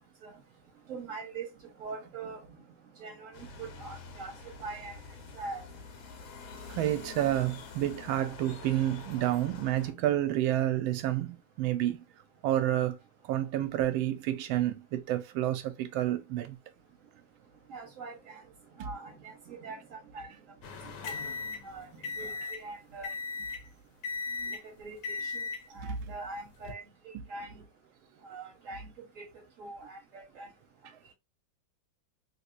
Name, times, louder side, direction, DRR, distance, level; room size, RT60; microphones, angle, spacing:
voice 1, 0.9-1.5 1.8-2.4 3.0-5.0 5.3-5.6 17.7-18.4 18.8-20.3 21.0-21.1 21.6-21.9 22.2-23.1 24.8-25.5 25.7-27.6 28.2-29.3 29.6-30.5, right 3 dB, 50° right, 1.3 m, -43 dB
sound 1, 3.3-9.9, left 4 dB, 90° left, 1.7 m, -47 dB
voice 2, 6.7-12.0 12.4-13.0 13.2-16.5 18.8-18.9 20.2-20.3 22.2-22.5 24.4-24.6 25.8-26.1 27.1-27.2, right 13 dB, 85° right, 1.3 m, -30 dB
sound 2, 20.6-22.7 23.0-23.7 24.0-24.7 25.0-25.7 26.5-26.7, left 5 dB, 70° left, 1.2 m, -37 dB
3.5 x 2.8 x 2.4 m
omnidirectional pair, 2.1 m